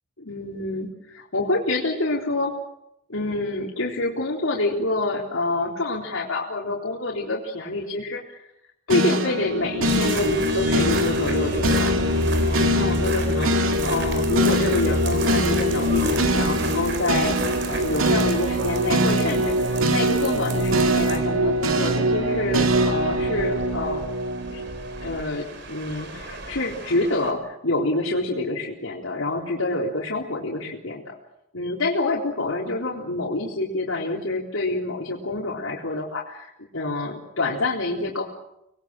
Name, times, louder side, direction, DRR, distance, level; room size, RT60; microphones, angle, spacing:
voice 1, 0.2-2.5 3.1-8.4 8.9-17.4 17.6-24.0 24.5-24.6 25.0-31.1 31.5-38.2, left 2 dB, 80° left, -2 dB, 3.8 m, -27 dB
sound 1, 8.9-25.2, equal, 85° right, 2.4 m, -23 dB
sound 2, 9.8-27.3, right 3 dB, 55° right, 4.3 m, -34 dB
26.0 x 20.5 x 7.6 m, 0.84 s
head